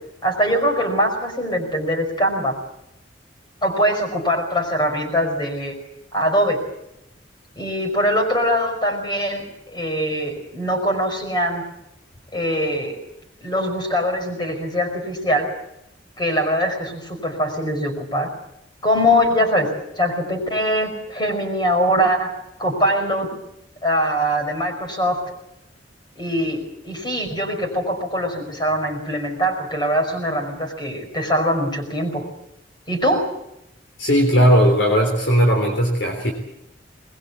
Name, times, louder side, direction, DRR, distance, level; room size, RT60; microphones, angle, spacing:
voice 1, 0.2-2.6 3.6-5.8 6.1-6.6 7.6-11.7 12.3-13.0 13.4-15.5 16.2-18.3 18.8-23.3 23.8-25.3 26.2-32.3 32.9-33.3, equal, 25° left, 3 dB, 5.4 m, -22 dB
voice 2, 34.0-36.3, equal, 70° left, 2 dB, 3.6 m, -17 dB
21.5 x 21.0 x 8.4 m, 0.81 s
head